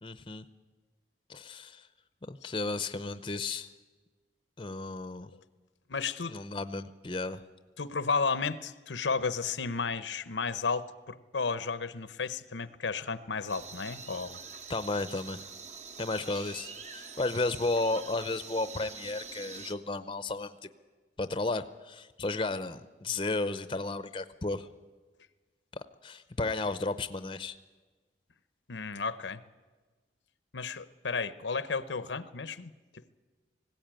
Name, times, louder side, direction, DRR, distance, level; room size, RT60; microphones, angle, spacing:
voice 1, 0.0-0.4 1.3-1.8 2.3-3.7 4.6-5.3 6.3-7.4 14.7-15.5 16.0-20.6 21.2-24.7 26.0-27.5, left 2 dB, 25° left, 12 dB, 0.6 m, -33 dB
voice 2, 5.9-6.4 7.8-14.4 28.7-29.4 30.5-33.2, left 4 dB, 90° left, 14 dB, 0.8 m, -33 dB
sound 1, 13.5-19.7, right 5 dB, 40° right, 1.1 m, -45 dB
19.5 x 16.5 x 9.0 m, 1.3 s
head